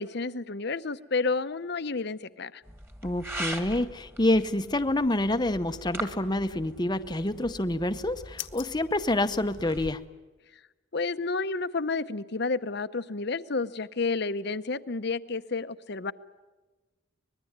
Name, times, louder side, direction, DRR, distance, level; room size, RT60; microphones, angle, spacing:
voice 1, 0.0-2.6 10.9-16.1, left 4 dB, 55° left, 13 dB, 0.8 m, -30 dB
sound 1, 2.6-9.9, right 1 dB, 10° right, 1.8 m, -41 dB
voice 2, 3.0-10.0, left 1 dB, 20° left, 9 dB, 0.8 m, -27 dB
sound 2, 7.3-10.1, left 13 dB, 70° left, 1.2 m, -46 dB
24.5 x 20.5 x 9.5 m, 1.2 s
head